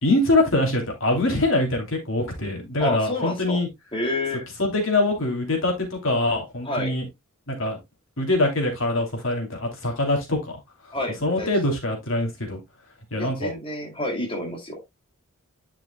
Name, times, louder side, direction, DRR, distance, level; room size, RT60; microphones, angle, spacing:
voice 1, 0.0-3.7 4.6-7.0 7.5-7.8 8.2-10.6 11.2-12.6 13.1-13.5, left 2 dB, 65° left, 3.1 m, -23 dB
voice 2, 2.8-3.6 3.9-4.5 6.6-6.9 10.9-11.5 13.2-14.8, left 1 dB, 25° left, 2.6 m, -29 dB
11.0 x 6.0 x 2.3 m
head